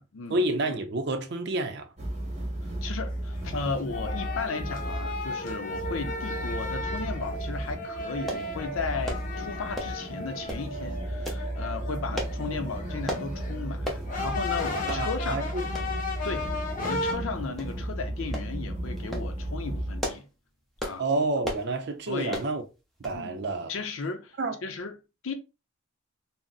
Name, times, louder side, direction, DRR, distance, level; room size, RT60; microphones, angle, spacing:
voice 1, 0.3-1.9 14.7-15.6 15.9-16.0 21.0-22.6 23.0-23.7 24.4-24.6, right 2 dB, 55° right, 0.5 m, -29 dB
sound 1, 2.0-20.0, right 1 dB, 35° right, 0.9 m, -35 dB
voice 2, 2.8-15.4 16.2-16.5 16.8-20.3 20.8-21.1 22.1-22.4 23.1-23.4 23.7-25.3, left 4 dB, 75° left, 0.5 m, -35 dB
sound 2, 3.1-17.1, left 2 dB, 40° left, 0.7 m, -35 dB
sound 3, 8.3-8.5 9.0-9.3 9.7-10.0 10.5-10.7 11.2-11.5 12.1-12.4 13.1-13.3 13.8-14.1 14.4-14.5 14.9-15.0 15.7-15.9 16.8-17.2 17.6-17.7 18.3-18.5 19.0-19.3 19.8-20.3 20.8-21.0 21.4-21.7 22.3-22.5 23.0-23.2 23.5-23.6, equal, ahead, 0.6 m, -34 dB
3.8 x 2.0 x 2.3 m
head